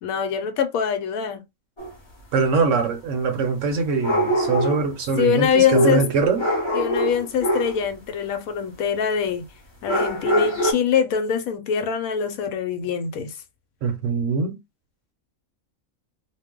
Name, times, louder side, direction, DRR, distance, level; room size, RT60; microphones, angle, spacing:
voice 1, 0.0-1.4 5.2-6.0 6.7-9.4 9.8-13.3, left 7 dB, 80° left, 1.0 m, -23 dB
sound 1, 1.8-1.9 4.0-4.9 5.7-7.8 9.9-10.7, equal, 25° left, 0.7 m, -22 dB
voice 2, 2.3-6.4 13.8-14.6, right 5 dB, 65° right, 0.9 m, -22 dB
2.4 x 2.1 x 3.5 m
omnidirectional pair, 1.5 m